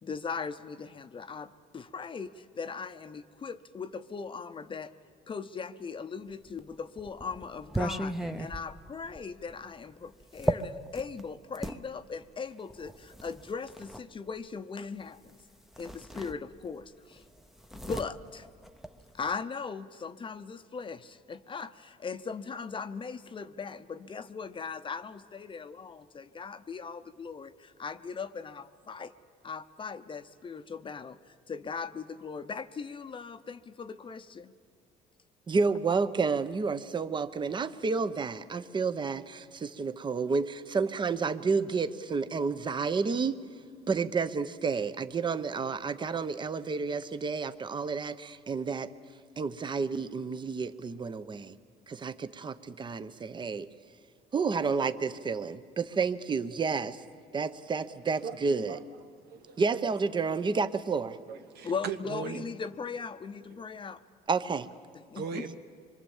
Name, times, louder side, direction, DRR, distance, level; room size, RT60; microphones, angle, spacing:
voice 1, 0.0-4.9 5.3-15.4 15.8-17.2 17.7-18.5 19.1-29.1 29.4-31.2 31.5-34.5 61.6-64.0 65.1-65.4, left 5 dB, 30° left, 11 dB, 0.8 m, -39 dB
sound 1, 6.5-11.8 12.7-14.1 15.3-15.4 15.7-16.9 17.1-19.4, right 1 dB, ahead, 0.8 m, -36 dB
voice 2, 35.5-43.4 43.9-48.9 49.4-51.5 51.9-53.7 54.3-57.0 57.3-58.8 59.6-61.2 64.3-64.7, right 4 dB, 25° right, 12 dB, 0.8 m, -30 dB
voice 3, 59.1-59.8 61.1-62.5 63.5-63.6 65.1-65.5, right 6 dB, 85° right, 7 dB, 1.4 m, -39 dB
25.0 x 22.5 x 7.3 m, 2.1 s
cardioid pair, 110°, 17 cm